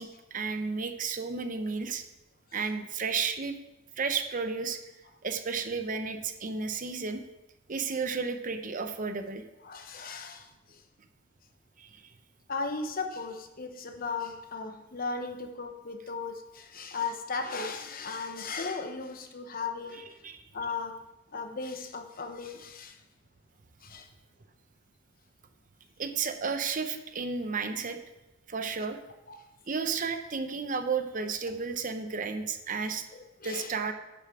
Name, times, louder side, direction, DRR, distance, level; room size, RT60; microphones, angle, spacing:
voice 1, 0.0-2.0 2.5-3.6 4.0-4.8 5.2-7.2 7.7-9.4 11.8-12.0 20.2-20.4 26.0-28.0 28.5-29.0 29.7-33.0 33.4-33.9, right 5 dB, 40° right, 7 dB, 0.7 m, -32 dB
voice 2, 9.6-10.8 12.5-20.0 20.5-21.0 21.3-23.0 23.8-24.1 29.3-29.4 33.1-33.7, left 4 dB, 45° left, 6 dB, 0.9 m, -36 dB
10.0 x 6.7 x 4.8 m, 0.97 s
head